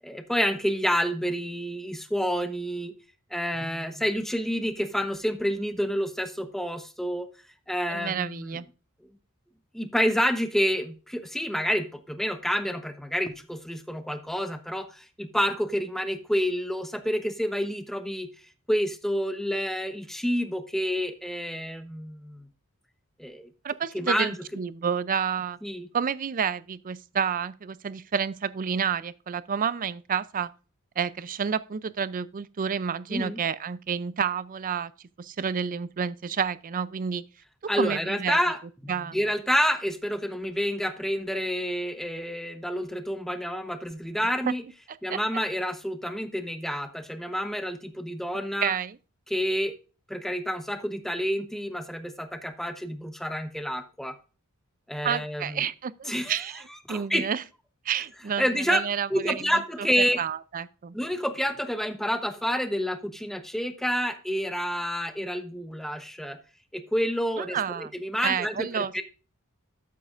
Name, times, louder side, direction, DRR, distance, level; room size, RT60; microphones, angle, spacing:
voice 1, 0.0-2.9 3.3-7.3 7.7-8.6 9.7-18.3 18.7-22.5 23.2-23.5 23.9-24.3 25.6-25.9 33.1-33.4 37.7-44.6 45.0-48.7 49.3-49.7 50.1-54.1 54.9-55.7 56.1-56.3 56.9-57.3 58.4-58.8 59.1-60.2 60.9-66.4 66.7-69.0, equal, ahead, 0.9 m, -28 dB
voice 2, 7.9-8.7 23.6-25.6 25.9-30.5 31.0-34.9 35.2-37.2 37.8-38.4 38.9-39.2 44.5-44.6 45.1-45.2 48.6-49.0 55.0-56.6 56.9-57.4 57.8-59.9 60.2-60.9 67.4-67.9 68.2-68.9, right 7 dB, 40° right, 0.4 m, -29 dB
12.5 x 8.2 x 2.5 m
head